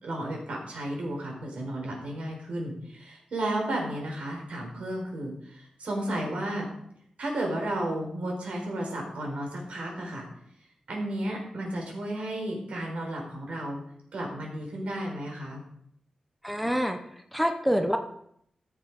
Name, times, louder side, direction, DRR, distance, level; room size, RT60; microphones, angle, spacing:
voice 1, 0.0-6.7 7.2-10.3 10.9-13.8 14.1-15.6, right 1 dB, 75° right, 0 dB, 4.2 m, -33 dB
voice 2, 16.4-17.0 17.3-18.0, equal, ahead, 6 dB, 0.8 m, -26 dB
14.0 x 6.8 x 5.3 m, 0.71 s
wide cardioid pair, 165°, 2 cm